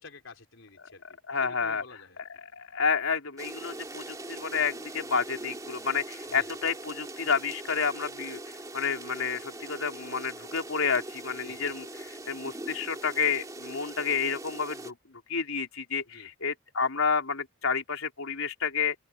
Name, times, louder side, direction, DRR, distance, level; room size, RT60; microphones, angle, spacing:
voice 1, 0.0-2.2 6.3-6.5 11.4-11.7 16.1-16.3, left 3 dB, 65° left, 4.5 m, -50 dB
voice 2, 1.3-19.0, left 5 dB, 85° left, 3.7 m, -30 dB
sound 1, 3.4-14.9, right 2 dB, 15° right, 3.1 m, -42 dB
open air
head